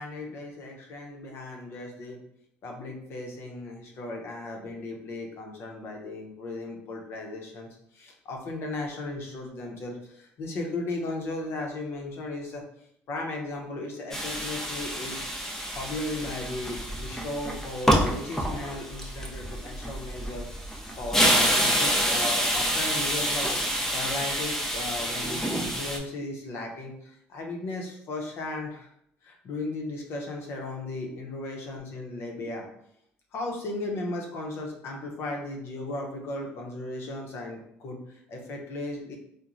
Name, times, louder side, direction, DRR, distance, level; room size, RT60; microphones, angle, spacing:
voice 1, 0.0-2.2 2.6-7.7 7.9-12.6 13.1-15.2 15.7-20.5 21.0-23.5 23.9-28.9 29.2-32.6 33.3-39.2, left 2 dB, 60° left, 1 dB, 0.7 m, -36 dB
sound 1, 14.1-26.0, equal, 10° left, 0.5 m, -27 dB
2.9 x 2.1 x 2.5 m, 0.73 s
supercardioid pair, 80°, 5 cm